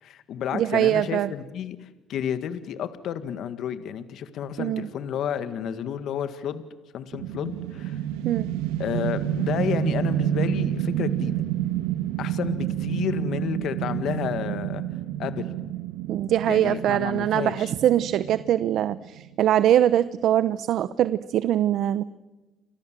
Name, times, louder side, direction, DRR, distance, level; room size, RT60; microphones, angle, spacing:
voice 1, 0.0-6.6 6.9-8.0 8.8-11.4 12.2-14.8 15.2-15.5 16.5-17.7, left 9 dB, 60° left, 11 dB, 1.8 m, -31 dB
voice 2, 0.5-1.3 4.6-4.9 8.2-8.5 16.1-22.0, right 11 dB, 60° right, 15 dB, 0.8 m, -22 dB
sound 1, 7.1-19.3, right 12 dB, 90° right, 1.5 m, -29 dB
29.5 x 25.5 x 7.6 m, 1.1 s
cardioid pair, 100°, 0 cm